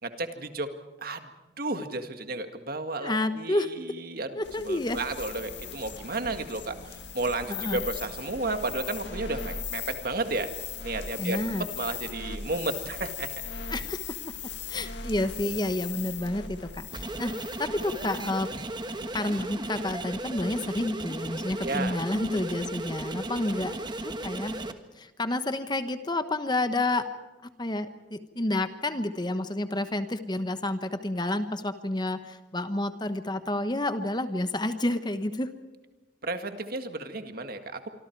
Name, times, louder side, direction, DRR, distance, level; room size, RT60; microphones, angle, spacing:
voice 1, 0.0-0.7 1.0-1.3 1.6-4.3 4.7-6.8 7.1-10.5 10.8-11.4 11.8-13.3 21.6-21.9 36.2-37.9, right 2 dB, 50° right, 7 dB, 1.9 m, -32 dB
voice 2, 3.0-3.7 4.4-5.0 7.5-7.8 11.2-11.6 13.7-14.1 14.7-17.3 17.6-18.5 19.1-23.7 24.0-24.5 25.0-27.1 27.6-35.5, left 1 dB, 25° left, 9 dB, 1.1 m, -30 dB
sound 1, 4.4-18.5, left 6 dB, 65° left, 1.9 m, -39 dB
sound 2, 16.9-24.7, right 2 dB, 25° right, 1.4 m, -35 dB
26.0 x 25.0 x 4.7 m, 1.2 s
head